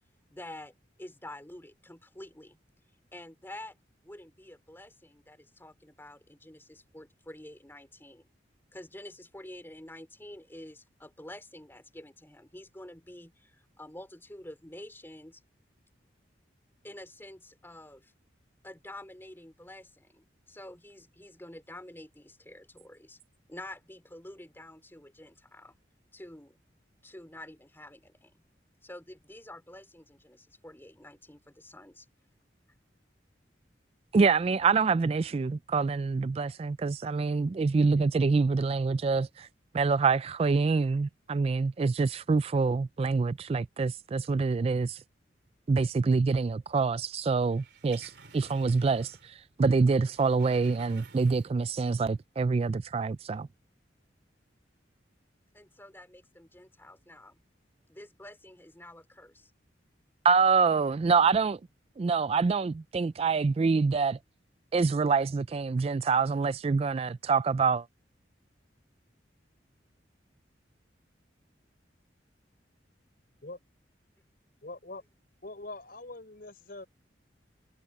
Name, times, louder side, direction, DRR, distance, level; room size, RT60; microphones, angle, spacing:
voice 1, 0.3-2.6 3.1-3.8 4.0-8.3 8.7-15.4 16.8-18.1 18.6-23.2 23.5-25.8 26.1-26.6 27.0-28.4 28.8-32.1 55.5-57.4 57.9-59.5, left 1 dB, 10° left, 3.4 m, -48 dB
voice 2, 34.1-39.5 39.7-45.0 45.7-53.5 60.2-61.6 62.0-64.2 64.7-67.9, right 4 dB, 30° right, 0.3 m, -26 dB
sound 1, 47.5-49.4 49.7-51.7 52.1-52.2, right 4 dB, 65° right, 3.5 m, -53 dB
voice 3, 74.6-75.0 75.4-76.9, left 2 dB, 50° left, 4.8 m, -43 dB
head